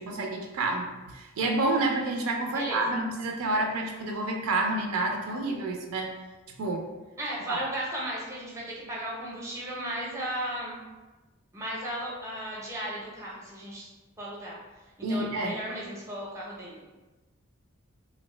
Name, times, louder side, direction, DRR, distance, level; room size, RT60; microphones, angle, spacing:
voice 1, 0.0-6.1 6.6-6.9 7.5-7.6 15.0-15.6, right 2 dB, 70° right, 2 dB, 0.4 m, -29 dB
voice 2, 2.5-2.8 7.2-10.8 11.5-13.9 14.2-14.6 15.1-16.8, right 1 dB, 15° right, -5 dB, 0.5 m, -35 dB
2.5 x 2.1 x 3.1 m, 1.2 s
head